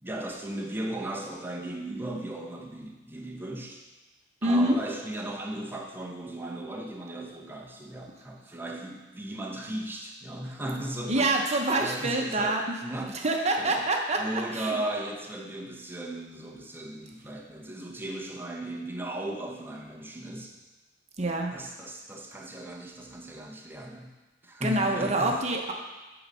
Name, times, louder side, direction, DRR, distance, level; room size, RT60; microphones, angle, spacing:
voice 1, 0.0-3.8 4.4-12.5 12.8-13.1 13.6-13.8 14.1-20.5 21.5-24.1 24.4-25.3, right 1 dB, 10° right, -1 dB, 1.0 m, -36 dB
voice 2, 4.4-4.8 11.1-12.6 13.2-14.8 21.2-21.5 24.6-25.7, right 2 dB, 35° right, 1 dB, 1.0 m, -26 dB
8.7 x 4.0 x 6.3 m, 1.1 s
head